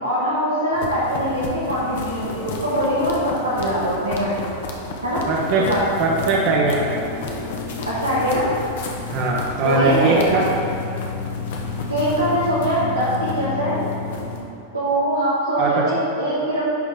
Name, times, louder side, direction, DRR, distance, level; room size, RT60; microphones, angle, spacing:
voice 1, 0.0-4.6 5.0-5.2 5.7-5.9 7.9-8.5 9.6-10.4 11.9-13.8 14.7-16.6, equal, 85° right, -9 dB, 1.4 m, -22 dB
sound 1, 0.7-14.4, left 4 dB, 55° left, 0.9 m, -31 dB
voice 2, 5.3-5.7 6.0-6.9 9.1-10.4 15.6-15.8, right 3 dB, 45° right, -3 dB, 0.8 m, -20 dB
10.5 x 4.2 x 3.6 m, 2.8 s
figure-of-eight pair, 90°, 0 cm